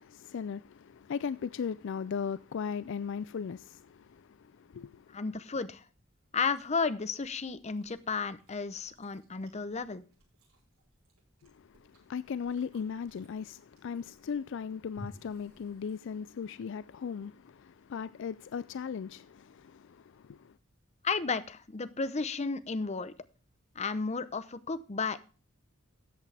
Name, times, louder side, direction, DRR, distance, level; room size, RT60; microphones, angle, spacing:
voice 1, 0.0-5.2 11.4-20.6, left 6 dB, 60° left, 0.4 m, -38 dB
voice 2, 5.1-5.8 6.3-10.0 21.0-23.1 23.8-25.2, left 4 dB, 30° left, 0.7 m, -33 dB
Chewing mastication, 6.3-16.5, equal, 90° right, 5.7 m, -57 dB
13.5 x 8.2 x 3.3 m
head